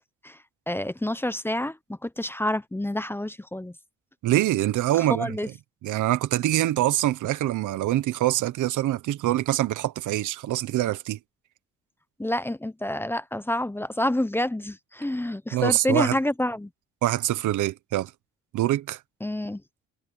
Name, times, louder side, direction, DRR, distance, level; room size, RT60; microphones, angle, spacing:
voice 1, 0.7-3.7 5.0-5.5 12.2-16.7 19.2-19.6, left 1 dB, 5° left, 0.9 m, -28 dB
voice 2, 4.2-5.4 5.8-11.2 15.5-16.2 17.0-18.1 18.5-19.0, right 14 dB, 80° right, 1.2 m, -24 dB
cardioid pair, 90°, 30 cm